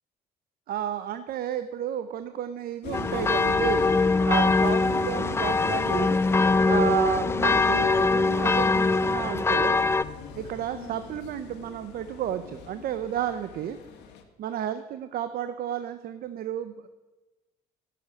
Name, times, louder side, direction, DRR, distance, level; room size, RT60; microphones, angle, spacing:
voice 1, 0.7-3.9 4.2-6.2 6.6-9.8 10.3-13.8 14.4-16.9, right 10 dB, 60° right, 11 dB, 0.7 m, -32 dB
sound 1, 2.8-14.2, left 6 dB, 85° left, 1.7 m, -39 dB
sound 2, 2.9-10.0, left 3 dB, 15° left, 0.4 m, -23 dB
11.0 x 7.9 x 9.7 m, 1.2 s
cardioid pair, 110°, 17 cm